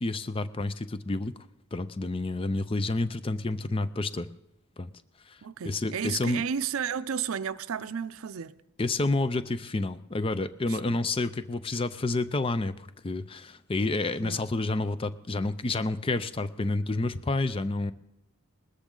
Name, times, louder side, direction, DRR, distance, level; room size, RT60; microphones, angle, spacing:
voice 1, 0.0-1.3 1.7-4.3 4.8-4.9 5.3-5.4 5.6-6.4 8.8-17.9, left 2 dB, 25° left, 0.4 m, -29 dB
voice 2, 5.4-8.5 10.7-11.0 14.2-14.4, right 7 dB, 80° right, 0.5 m, -33 dB
19.5 x 13.5 x 3.8 m
head